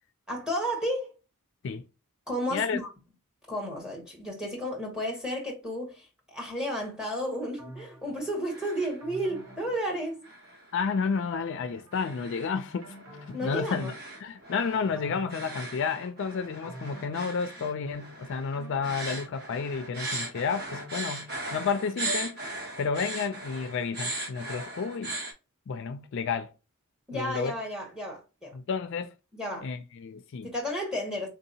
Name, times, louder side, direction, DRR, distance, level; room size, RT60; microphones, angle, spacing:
voice 1, 0.3-1.1 2.3-2.9 3.5-10.3 13.3-13.9 27.1-28.5 29.3-29.7 30.4-31.3, equal, 5° right, 1.2 m, -32 dB
sound 1, 7.6-8.4 9.0-10.5 10.9-12.2 12.6-14.3 14.7-16.1 16.6-18.1 18.5-21.8 22.1-22.2, right 1 dB, 80° right, 1.2 m, -49 dB
sound 2, 8.2-9.0 9.3-9.8 10.2-25.3, right 2 dB, 45° right, 1.2 m, -39 dB
voice 2, 10.7-12.9 13.3-13.9 14.2-22.4 22.8-25.1 25.7-26.5 27.1-27.5 28.5-29.1 29.6-30.5, left 5 dB, 55° left, 0.4 m, -31 dB
3.6 x 2.7 x 2.7 m
head